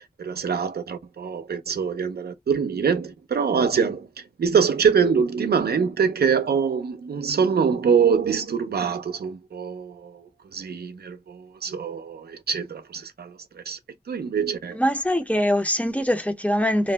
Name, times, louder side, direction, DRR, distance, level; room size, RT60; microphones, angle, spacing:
voice 1, 0.2-4.1 4.4-10.2 10.5-13.3 13.7-13.8 14.1-14.8, right 6 dB, 75° right, 0.5 m, -24 dB
voice 2, 14.7-16.9, equal, 10° left, 0.5 m, -23 dB
2.5 x 2.0 x 3.3 m
wide cardioid pair, 80°, 16 cm